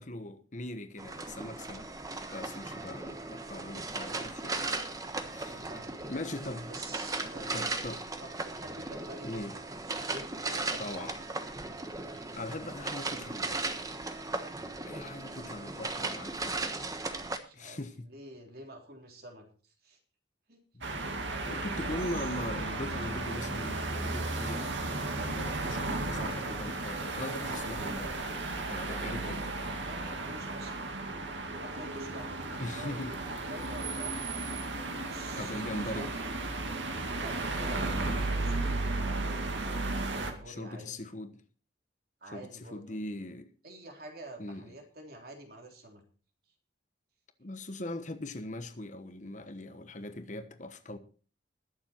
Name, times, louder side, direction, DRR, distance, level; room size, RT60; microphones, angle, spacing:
voice 1, 0.0-4.8 5.3-5.6 6.1-6.7 7.5-8.0 9.2-9.5 10.8-11.1 12.1-13.8 14.8-16.6 17.5-18.1 20.7-20.9 21.4-24.7 25.2-28.4 28.7-29.5 32.6-33.2 35.4-36.1 37.7-38.2 40.5-41.4 42.3-43.5 44.4-44.7 47.4-51.0, left 1 dB, 40° left, 1.2 m, -41 dB
sound 1, 1.0-17.4, right 3 dB, 20° right, 1.2 m, -37 dB
voice 2, 5.5-5.9 6.7-7.6 8.2-11.1 17.4-17.8 18.0-20.0 20.5-20.6 29.2-29.5 29.8-34.7 35.0-35.6 35.9-36.3 37.2-38.1 38.4-39.4 40.1-41.0 42.2-43.0 43.6-46.0, right 1 dB, 55° right, 3.5 m, -48 dB
sound 2, 20.8-40.3, right 2 dB, 85° right, 2.2 m, -34 dB
21.0 x 7.4 x 4.4 m
head